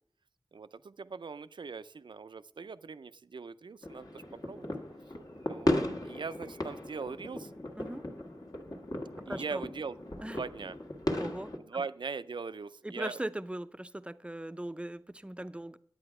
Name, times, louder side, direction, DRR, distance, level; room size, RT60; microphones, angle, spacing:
voice 1, 0.5-4.7 5.4-7.5 9.3-10.0 10.3-10.8 11.7-13.2, right 5 dB, 80° right, 0.4 m, -40 dB
sound 1, 3.8-11.6, left 1 dB, 50° left, 1.4 m, -36 dB
voice 2, 7.8-8.1 9.2-9.6 10.2-10.4 11.2-11.8 12.8-15.8, right 1 dB, 15° right, 0.5 m, -39 dB
9.9 x 8.8 x 4.8 m
wide cardioid pair, 65°, 8 cm